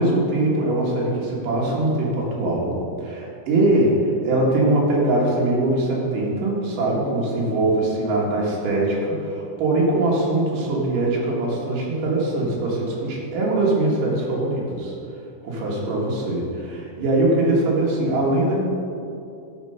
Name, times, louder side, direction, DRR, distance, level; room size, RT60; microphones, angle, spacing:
voice 1, 0.0-15.0 15.4-18.6, right 2 dB, 65° right, -3 dB, 2.4 m, -22 dB
12.0 x 4.4 x 5.4 m, 2.6 s
omnidirectional pair, 5.3 m